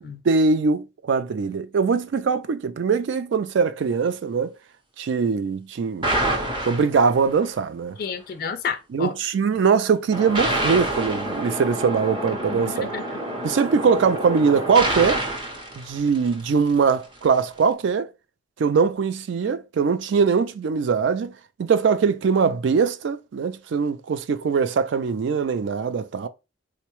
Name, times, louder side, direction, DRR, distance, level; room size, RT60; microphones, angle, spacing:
voice 1, 0.2-4.5 5.0-6.1 6.7-8.0 8.9-12.9 13.4-15.2 15.8-18.1 18.6-21.3 21.6-26.3, right 5 dB, 65° right, 0.3 m, -22 dB
sound 1, 6.0-7.4 10.1-16.7, right 1 dB, 25° right, 0.7 m, -27 dB
voice 2, 8.0-9.1 12.3-13.2, left 6 dB, 45° left, 0.3 m, -31 dB
3.8 x 2.1 x 2.9 m
head